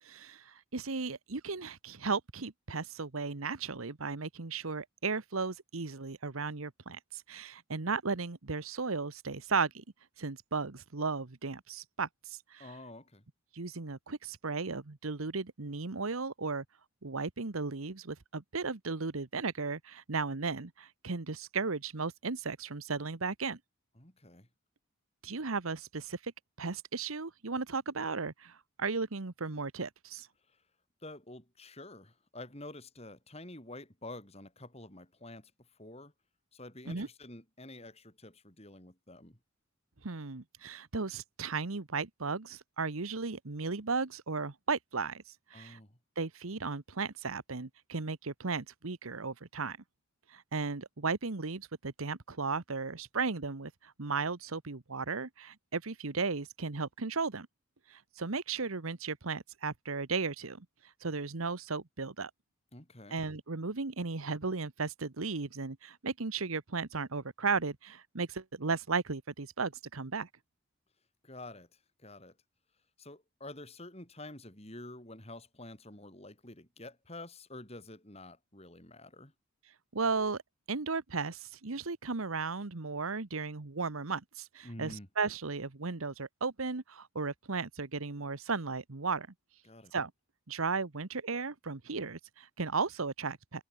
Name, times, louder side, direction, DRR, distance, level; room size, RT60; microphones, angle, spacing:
voice 1, 0.0-9.8 10.2-12.7 13.5-16.6 17.0-23.6 25.2-26.3 26.6-30.3 36.9-37.1 40.0-45.8 46.2-49.8 50.3-57.5 57.9-62.3 63.1-70.3 79.9-80.4 80.7-89.3 89.9-90.1 90.5-93.6, right 4 dB, 85° right, 1.3 m, -35 dB
voice 2, 12.6-13.2 24.0-24.5 30.5-30.6 31.0-36.1 36.5-39.4 45.5-46.0 62.7-63.2 71.2-72.4 73.0-79.3 84.6-85.1 89.6-89.9, left 2 dB, 30° left, 5.3 m, -48 dB
head